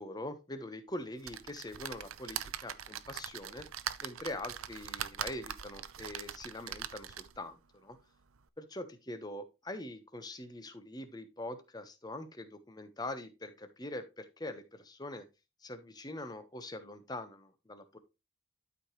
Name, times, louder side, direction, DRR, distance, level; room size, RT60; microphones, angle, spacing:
voice 1, 0.0-3.7 4.0-8.0 8.6-15.3 15.6-18.0, left 1 dB, 20° left, 9 dB, 1.0 m, -43 dB
sound 1, 1.2-7.5 8.0-8.1 8.4-8.5, right 10 dB, 90° right, 0.6 m, -42 dB
12.0 x 5.0 x 3.1 m, 0.26 s
head